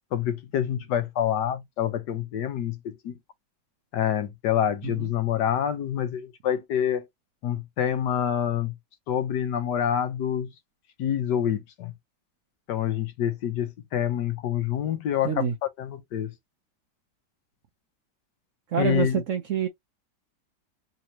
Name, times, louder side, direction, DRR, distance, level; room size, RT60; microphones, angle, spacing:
voice 1, 0.1-3.2 3.9-7.1 7.4-8.7 9.1-10.5 11.0-11.9 12.7-15.5 15.8-16.3 18.8-19.2, left 9 dB, 75° left, 1.4 m, -27 dB
voice 2, 15.2-15.5 18.7-19.7, right 8 dB, 60° right, 0.8 m, -27 dB
3.9 x 2.9 x 2.9 m
omnidirectional pair, 1.9 m